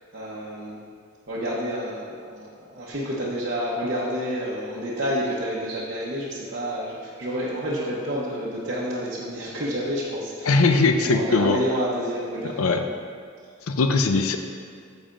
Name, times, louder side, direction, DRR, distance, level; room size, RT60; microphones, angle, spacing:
voice 1, 0.1-0.8 1.3-10.6 11.0-12.8, equal, 50° right, -8 dB, 0.9 m, -29 dB
voice 2, 10.5-11.6 12.4-12.8 13.7-14.4, left 3 dB, 85° left, 6 dB, 0.5 m, -20 dB
9.8 x 7.2 x 2.5 m, 2.1 s
head